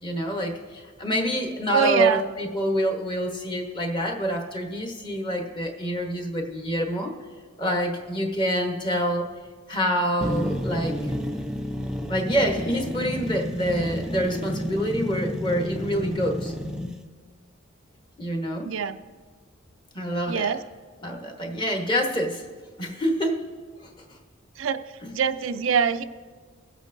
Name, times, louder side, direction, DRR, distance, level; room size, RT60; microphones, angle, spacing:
voice 1, 0.0-7.1 7.6-9.3 9.7-11.0 12.1-16.5 18.2-18.7 19.9-20.5 21.0-22.4 22.8-23.4 23.8-24.2 25.0-25.1, equal, 25° left, 2 dB, 1.1 m, -26 dB
voice 2, 1.7-2.2 18.6-19.0 20.3-20.6 24.6-24.8 25.1-26.0, right 7 dB, 70° right, 10 dB, 0.4 m, -24 dB
sound 1, 10.2-17.0, equal, 5° right, 0.5 m, -31 dB
24.0 x 8.0 x 2.6 m, 1.5 s
head